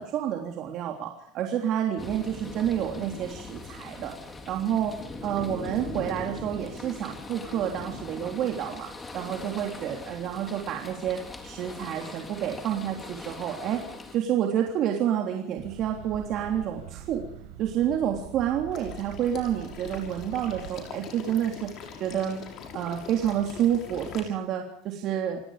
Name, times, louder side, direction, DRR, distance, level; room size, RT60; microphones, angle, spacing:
voice 1, 0.0-4.1 4.5-5.0 5.2-13.8 14.1-17.3 17.6-21.7 22.0-22.4 22.7-25.4, right 10 dB, 45° right, 2 dB, 3.4 m, -29 dB
sound 1, 2.0-14.2, left 2 dB, 15° left, 3.6 m, -41 dB
sound 2, 15.6-20.7, right 9 dB, 75° right, 5.9 m, -44 dB
Water / Liquid, 18.7-24.2, left 7 dB, 40° left, 6.5 m, -43 dB
28.5 x 19.0 x 5.1 m, 0.65 s
cardioid pair, 150°, 0 cm